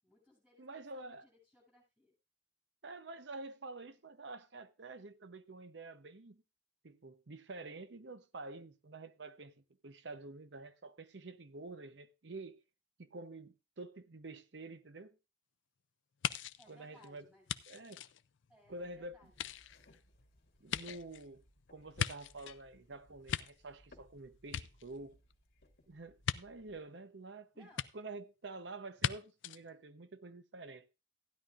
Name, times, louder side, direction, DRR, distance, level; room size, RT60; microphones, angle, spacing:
voice 1, 0.0-2.1 16.6-17.5 18.5-19.4 27.5-27.9, left 1 dB, 10° right, 7.9 m, -64 dB
voice 2, 0.6-1.2 2.8-6.4 6.8-12.6 13.0-15.2 16.7-17.2 17.7-18.0 18.7-19.2 20.6-21.4 21.7-25.2 25.9-27.7 27.9-30.9, right 2 dB, 70° right, 0.8 m, -48 dB
sound 1, 16.2-18.8 19.3-22.6 23.0-24.1 24.4-25.3 26.2-26.4 27.8-27.9 29.0-29.1 29.4-29.6, left 8 dB, 85° left, 0.5 m, -39 dB
sound 2, 18.7-26.8, left 1 dB, 60° left, 2.2 m, -66 dB
15.5 x 10.5 x 2.5 m
head